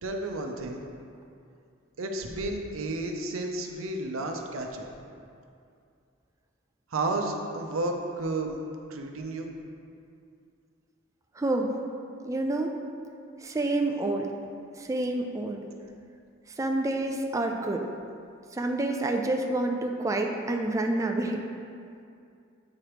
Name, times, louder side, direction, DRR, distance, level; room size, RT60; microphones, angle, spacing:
voice 1, 0.0-0.8 2.0-4.9 6.9-8.6 8.9-9.5, right 2 dB, 90° right, 3 dB, 0.7 m, -32 dB
voice 2, 11.4-11.7 12.2-12.7 13.4-14.3 14.8-15.6 16.6-17.8 18.5-21.4, right 2 dB, 15° right, 3 dB, 0.3 m, -28 dB
8.5 x 3.0 x 4.9 m, 2.4 s
head